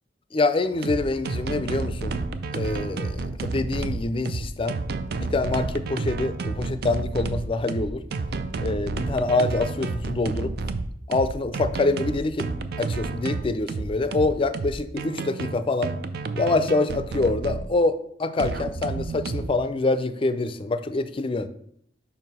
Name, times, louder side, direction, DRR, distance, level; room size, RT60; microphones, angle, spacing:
voice 1, 0.3-2.2 2.5-4.8 5.2-8.0 8.6-10.5 11.1-12.5 12.8-15.9 16.4-21.5, left 2 dB, 30° left, 12 dB, 0.4 m, -25 dB
sound 1, 0.7-17.7 18.4-19.6, right 3 dB, 60° right, 0.5 m, -30 dB
5.4 x 4.7 x 5.4 m, 0.68 s
head